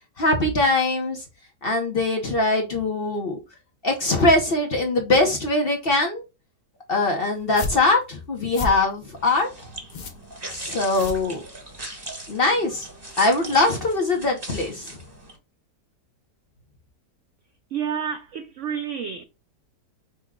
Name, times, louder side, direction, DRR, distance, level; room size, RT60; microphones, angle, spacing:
voice 1, 0.2-1.2 1.6-3.4 3.8-6.2 6.9-9.5 10.5-11.4 12.3-12.9 13.2-15.0, left 2 dB, 45° left, 0.8 m, -22 dB
sound 1, 7.4-11.9, left 2 dB, 75° left, 0.4 m, -35 dB
sound 2, 9.2-15.4, right 1 dB, 15° right, 1.0 m, -39 dB
voice 2, 17.7-19.2, right 7 dB, 80° right, 0.6 m, -29 dB
5.9 x 2.2 x 3.5 m
omnidirectional pair, 1.8 m